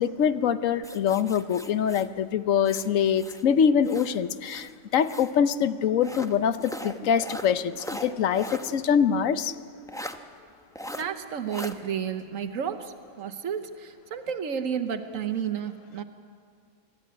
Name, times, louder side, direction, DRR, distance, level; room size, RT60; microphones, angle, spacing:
voice 1, 0.0-4.7 4.9-7.7 8.0-9.5, left 7 dB, 80° left, 13 dB, 1.1 m, -24 dB
sound 1, 0.8-3.5 3.8-5.4 6.0-8.7 9.1-9.2 9.9-10.2 10.8-11.1 11.5-11.7, equal, 5° left, 0.7 m, -39 dB
voice 2, 10.9-16.0, right 8 dB, 85° right, 7 dB, 1.4 m, -32 dB
25.0 x 13.0 x 9.5 m, 2.1 s
omnidirectional pair, 1.4 m